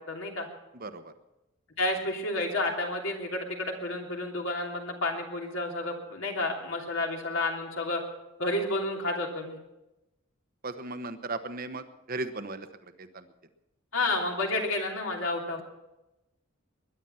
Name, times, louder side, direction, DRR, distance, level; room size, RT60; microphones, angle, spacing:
voice 1, 0.1-0.5 1.8-8.0 8.4-9.6 13.9-15.6, left 2 dB, 70° left, 1 dB, 3.1 m, -30 dB
voice 2, 0.7-1.1 10.6-13.3, right 2 dB, 40° right, 10 dB, 1.1 m, -37 dB
20.5 x 11.0 x 5.7 m, 0.94 s
head